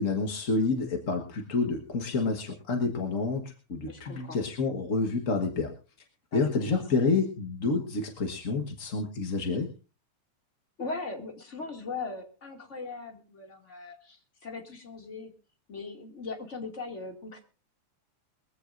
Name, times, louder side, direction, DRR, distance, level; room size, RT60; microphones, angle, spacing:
voice 1, 0.0-5.7 6.3-9.7, left 3 dB, 45° left, 3 dB, 1.0 m, -28 dB
voice 2, 3.9-4.4 6.3-6.8 10.8-15.3 15.7-17.4, left 3 dB, 25° left, 2 dB, 2.3 m, -39 dB
22.0 x 15.0 x 2.6 m, 0.33 s
omnidirectional pair, 3.4 m